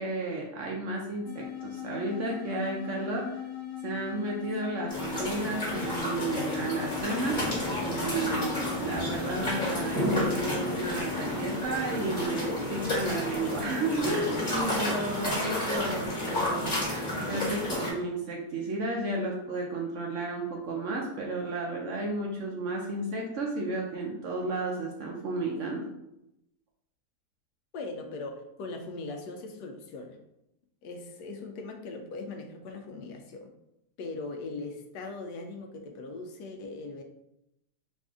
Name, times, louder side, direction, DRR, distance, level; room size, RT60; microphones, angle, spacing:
voice 1, 0.0-3.4 3.8-7.4 7.8-25.9, right 2 dB, 65° right, -1 dB, 0.8 m, -33 dB
sound 1, 1.2-11.6, left 11 dB, 55° left, 0.9 m, -39 dB
sound 2, 4.9-17.9, left 1 dB, 30° left, 1.5 m, -31 dB
voice 2, 27.7-30.2 30.8-33.5 34.0-37.0, left 3 dB, 80° left, 4 dB, 1.2 m, -40 dB
4.2 x 2.6 x 3.5 m, 0.85 s
omnidirectional pair, 1.7 m